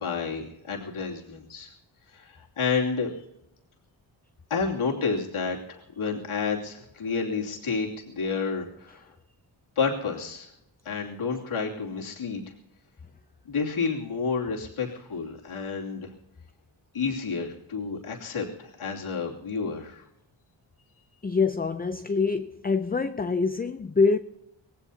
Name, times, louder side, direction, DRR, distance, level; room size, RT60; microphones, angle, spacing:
voice 1, 0.0-1.7 2.1-3.1 4.5-9.1 9.8-10.5 10.8-12.4 13.4-16.1 16.9-20.0, left 5 dB, 80° left, 2.8 m, -30 dB
voice 2, 21.2-24.2, left 4 dB, 20° left, 0.5 m, -25 dB
25.0 x 18.0 x 2.8 m
cardioid pair, 70°, 49 cm